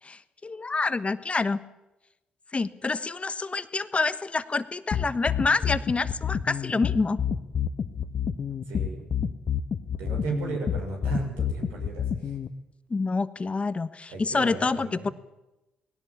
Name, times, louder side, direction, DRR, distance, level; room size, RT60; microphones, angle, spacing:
voice 1, 0.0-1.6 2.5-7.2 12.9-15.1, left 3 dB, 30° left, 13 dB, 1.2 m, -27 dB
sound 1, 4.9-12.5, left 8 dB, 55° left, 1.3 m, -28 dB
voice 2, 8.7-9.1 10.0-12.3 14.1-15.1, right 3 dB, 75° right, 1 dB, 6.4 m, -34 dB
19.5 x 17.0 x 8.7 m, 0.99 s
hypercardioid pair, 45°, 4 cm